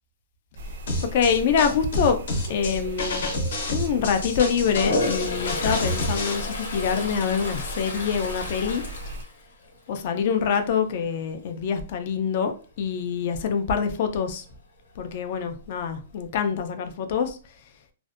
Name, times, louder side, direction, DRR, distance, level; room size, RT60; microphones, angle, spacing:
sound 1, 0.6-9.2, right 1 dB, 55° right, 0.4 m, -37 dB
sound 2, 0.9-6.3, left 1 dB, 55° left, 0.7 m, -29 dB
voice 1, 1.0-2.2 2.5-3.3 3.7-8.8 9.9-14.5 15.0-17.4, left 6 dB, 35° left, 0.3 m, -25 dB
Toilet flush, 4.7-9.9 10.3-10.7 15.1-15.2 15.5-16.2, left 2 dB, 90° left, 0.8 m, -31 dB
2.5 x 2.1 x 2.4 m
hypercardioid pair, 175°, 0 cm